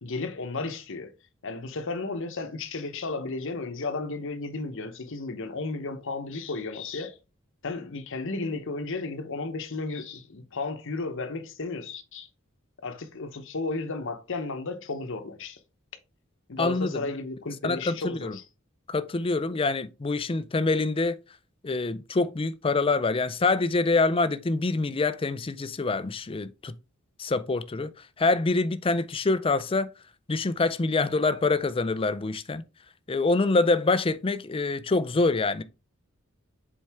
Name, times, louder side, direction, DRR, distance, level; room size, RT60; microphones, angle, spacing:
voice 1, 0.0-1.1 1.4-7.2 7.6-12.3 12.8-15.6 16.5-18.4, left 3 dB, 60° left, 0.9 m, -33 dB
voice 2, 16.6-17.1 17.6-18.4 18.9-21.2 21.6-26.7 27.2-27.9 28.2-29.9 30.3-32.6 33.1-35.6, left 3 dB, 25° left, 0.4 m, -25 dB
7.4 x 4.5 x 3.5 m
head